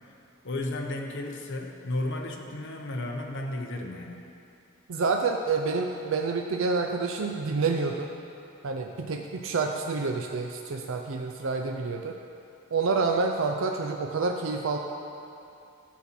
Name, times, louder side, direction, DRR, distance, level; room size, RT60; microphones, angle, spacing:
voice 1, 0.4-4.2, left 1 dB, 55° left, 1 dB, 0.9 m, -33 dB
voice 2, 4.9-8.1 8.6-12.2 12.7-14.8, right 4 dB, 60° right, 3 dB, 0.5 m, -28 dB
11.5 x 4.3 x 7.4 m, 2.6 s
head